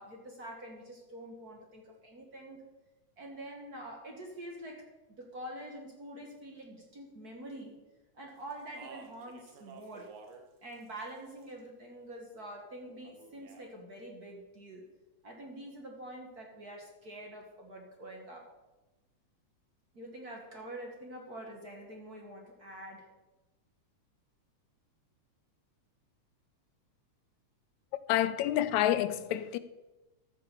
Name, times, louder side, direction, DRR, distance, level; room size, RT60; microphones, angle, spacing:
voice 1, 0.0-2.6 3.2-4.9 5.2-7.8 8.1-10.1 10.6-14.9 15.2-18.5 19.9-23.1, right 1 dB, 40° right, 1.7 m, -46 dB
Speech, 8.5-10.5 10.7-11.6 13.0-13.7, right 5 dB, 85° right, 2.7 m, -52 dB
voice 2, 28.1-29.6, left 12 dB, 80° left, 1.9 m, -28 dB
13.5 x 6.7 x 6.9 m
omnidirectional pair, 3.3 m